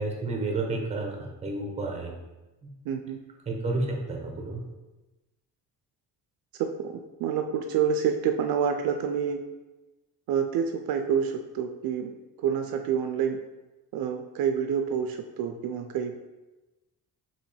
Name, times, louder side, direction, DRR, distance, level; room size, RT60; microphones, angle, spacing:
voice 1, 0.0-2.1 2.6-2.7 3.5-4.6, right 2 dB, 20° right, 1 dB, 0.8 m, -31 dB
voice 2, 2.9-3.2 6.6-9.4 10.3-12.1 12.4-13.4 13.9-16.2, right 7 dB, 70° right, 5 dB, 0.5 m, -28 dB
5.0 x 3.0 x 3.3 m, 1.1 s
cardioid pair, 150°, 37 cm